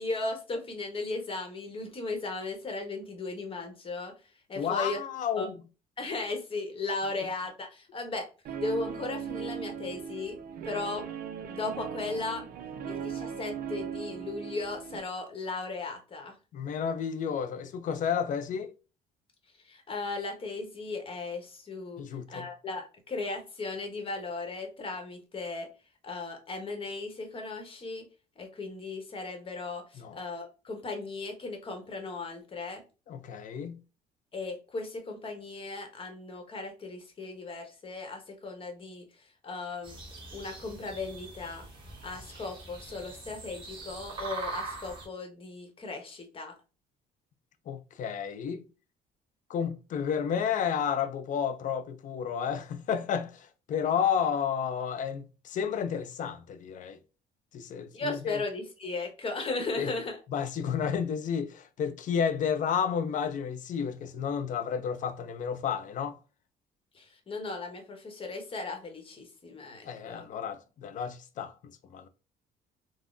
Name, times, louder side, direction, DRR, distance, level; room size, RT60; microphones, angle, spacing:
voice 1, 0.0-4.1 4.5-5.0 5.3-5.5 6.0-8.3 8.6-10.4 10.6-11.1 11.5-12.4 12.8-16.4 19.6-22.0 22.3-25.7 26.0-28.1 28.4-32.8 34.3-40.0 40.3-41.6 42.0-46.5 57.9-60.2 66.9-70.3, left 3 dB, 30° left, 0.9 m, -36 dB
voice 2, 4.5-5.6 16.5-18.7 22.0-22.5 30.0-30.2 33.1-33.8 47.7-48.7 49.5-57.0 57.5-58.4 59.8-59.9 60.3-66.2 69.9-71.5 71.9-72.1, left 7 dB, 50° left, 0.4 m, -31 dB
Guitar, 8.4-15.0, right 7 dB, 60° right, 0.4 m, -38 dB
sound 1, 39.8-45.1, right 3 dB, 30° right, 1.1 m, -42 dB
3.6 x 2.0 x 2.4 m
cardioid pair, 110°, 17 cm